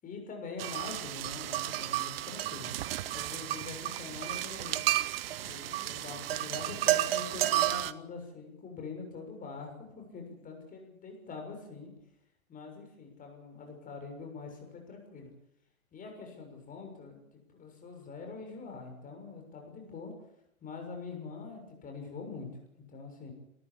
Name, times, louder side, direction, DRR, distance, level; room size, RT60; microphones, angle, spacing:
voice 1, 0.0-2.7 3.1-4.8 5.3-11.9 12.5-15.3 15.9-17.2 17.5-20.1 20.6-22.5 22.8-23.3, left 4 dB, 20° left, 3 dB, 6.6 m, -44 dB
sound 1, 0.6-7.9, right 14 dB, 45° right, 1.0 m, -32 dB
27.0 x 14.0 x 8.7 m, 0.76 s
figure-of-eight pair, 110°, 41 cm